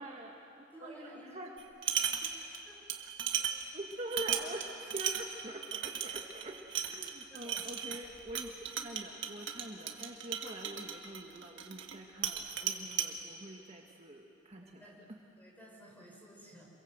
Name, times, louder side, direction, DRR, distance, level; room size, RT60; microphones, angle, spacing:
voice 1, 0.0-1.5 3.4-3.5 3.7-8.5 8.8-15.2, right 1 dB, 35° right, 0 dB, 1.5 m, -45 dB
voice 2, 0.7-1.3 2.2-3.0 7.3-7.6 14.5-15.0 15.4-16.6, right 1 dB, 10° left, -3 dB, 6.0 m, -54 dB
sound 1, 1.6-2.6 2.9-12.0 12.2-13.1, right 9 dB, 65° right, 1.7 m, -36 dB
27.0 x 22.5 x 8.0 m, 2.6 s
head